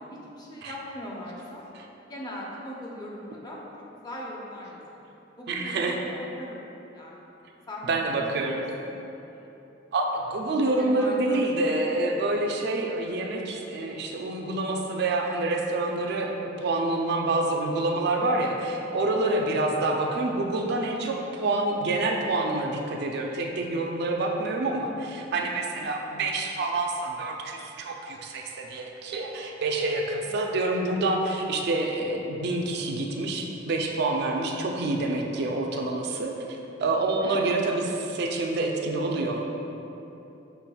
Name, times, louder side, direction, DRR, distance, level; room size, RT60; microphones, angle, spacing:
voice 1, 0.0-1.6 2.1-3.6 4.0-5.0 5.4-6.6 6.9-7.3 7.7-8.9 10.6-11.7 19.1-19.4 25.6-25.9 30.2-30.5 37.2-37.5, left 1 dB, 20° left, -4 dB, 0.6 m, -40 dB
voice 2, 5.5-6.0 7.8-8.6 9.9-36.3 36.8-39.5, right 2 dB, 60° right, 1 dB, 0.4 m, -27 dB
5.8 x 3.4 x 2.3 m, 2.9 s
head